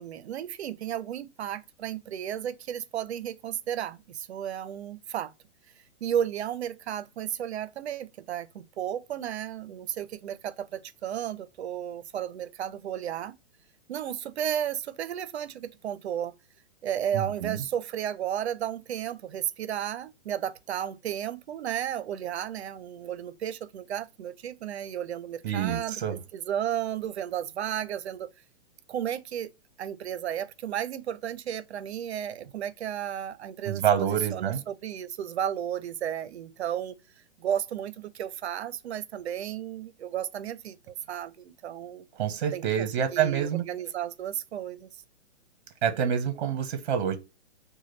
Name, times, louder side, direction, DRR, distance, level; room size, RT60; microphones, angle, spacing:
voice 1, 0.0-5.3 6.0-13.3 13.9-16.3 16.8-25.9 26.3-28.3 28.9-29.5 29.8-36.9 37.4-42.1 42.5-44.9, right 10 dB, 70° right, 0.7 m, -33 dB
voice 2, 17.1-17.6 25.4-26.2 33.6-34.6 42.1-43.7 45.8-47.2, right 8 dB, 45° right, 0.9 m, -27 dB
3.1 x 2.3 x 3.1 m
hypercardioid pair, 160°, 34 cm